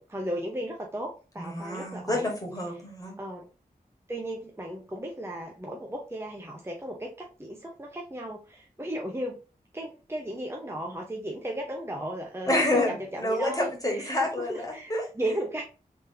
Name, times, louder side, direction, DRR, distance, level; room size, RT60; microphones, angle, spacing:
voice 1, 0.0-2.3 3.2-3.4 4.1-9.4 9.7-14.1 14.5-15.6, right 1 dB, 15° right, 0 dB, 0.7 m, -35 dB
voice 2, 1.4-3.1 12.5-15.1, left 1 dB, 20° left, 0 dB, 1.7 m, -28 dB
3.5 x 3.2 x 2.8 m, 0.33 s
cardioid pair, 45°, 16 cm